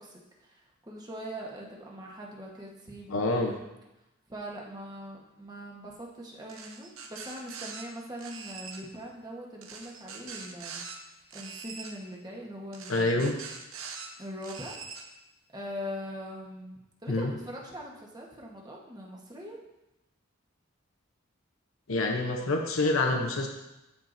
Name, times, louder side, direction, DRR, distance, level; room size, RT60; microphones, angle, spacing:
voice 1, 0.0-3.6 4.3-10.8 11.3-13.3 14.2-14.8 15.5-19.6, equal, 20° right, -2 dB, 1.2 m, -42 dB
voice 2, 3.1-3.5 12.9-13.3 17.1-17.3 21.9-23.5, left 2 dB, 80° left, 2 dB, 0.8 m, -26 dB
sound 1, 6.5-7.8 8.2-8.8 9.6-11.0 11.3-11.9 12.7-14.1 14.4-15.0, right 5 dB, 80° right, 0.9 m, -43 dB
13.0 x 4.6 x 2.6 m, 0.95 s
head